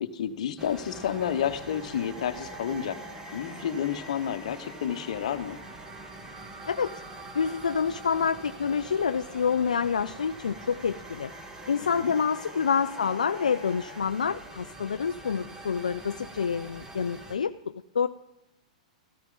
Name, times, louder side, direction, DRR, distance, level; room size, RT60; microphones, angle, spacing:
voice 1, 0.0-3.0 3.3-5.6 11.9-12.1, left 9 dB, 65° left, 11 dB, 1.0 m, -30 dB
sound 1, 0.6-17.4, right 1 dB, 15° right, 1.4 m, -45 dB
sound 2, 0.9-14.0, right 1 dB, 80° right, 5.2 m, -47 dB
voice 2, 7.3-11.3 11.7-18.1, left 6 dB, 80° left, 11 dB, 0.4 m, -27 dB
14.0 x 13.5 x 3.9 m, 0.91 s
hypercardioid pair, 110°, 4 cm